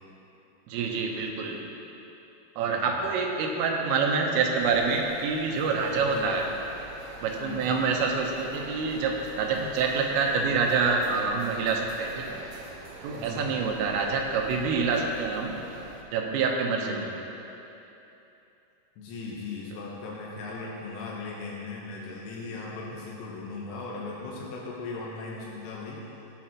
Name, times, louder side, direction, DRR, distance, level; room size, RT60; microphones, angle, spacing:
voice 1, 0.7-1.6 2.6-6.5 6.7-6.8 7.2-12.4 13.0-15.6 16.1-17.1 22.0-22.1, right 4 dB, 85° right, 1 dB, 3.6 m, -27 dB
voice 2, 2.7-3.0 6.1-6.3 7.4-7.7 13.1-13.5 16.7-17.2 19.0-26.0, left 3 dB, 85° left, -4 dB, 3.7 m, -38 dB
sound 1, 4.6-16.0, right 3 dB, 70° right, 2.7 m, -45 dB
17.0 x 9.8 x 3.0 m, 3.0 s
omnidirectional pair, 5.7 m